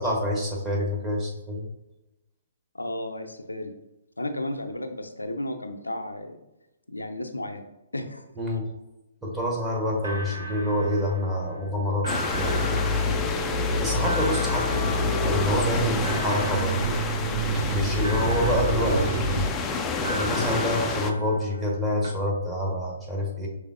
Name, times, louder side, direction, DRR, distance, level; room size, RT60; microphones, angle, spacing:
voice 1, 0.0-1.6 8.4-8.7 9.2-12.6 13.8-16.9 17.7-19.0 19.3-19.5 20.0-23.5, left 1 dB, 10° right, -3 dB, 1.0 m, -27 dB
voice 2, 2.7-3.7 4.2-6.4 6.9-7.6 7.9-8.2 18.8-19.2, left 1 dB, 85° left, 6 dB, 0.5 m, -32 dB
sound 1, 9.6-9.7 10.0-11.7 12.0-15.8 16.0-17.7 18.0-19.7 20.0-21.8 22.0-22.1, equal, 75° right, 0.9 m, -37 dB
sound 2, 12.1-21.1, left 4 dB, 15° left, 0.4 m, -30 dB
sound 3, 12.3-19.5, equal, 35° right, 1.3 m, -27 dB
5.4 x 3.3 x 2.5 m, 0.96 s
figure-of-eight pair, 125°, 0 cm